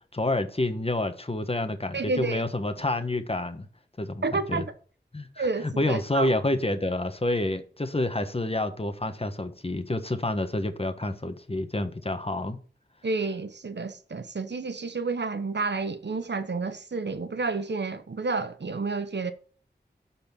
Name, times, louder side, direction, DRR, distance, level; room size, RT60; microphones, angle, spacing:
voice 1, 0.1-3.7 4.0-4.6 5.1-12.6, left 2 dB, 30° left, 1.3 m, -28 dB
voice 2, 1.9-2.4 4.2-4.7 5.4-6.3 13.0-19.3, right 3 dB, 75° right, 1.0 m, -30 dB
11.5 x 4.4 x 7.1 m
wide cardioid pair, 55°, 18 cm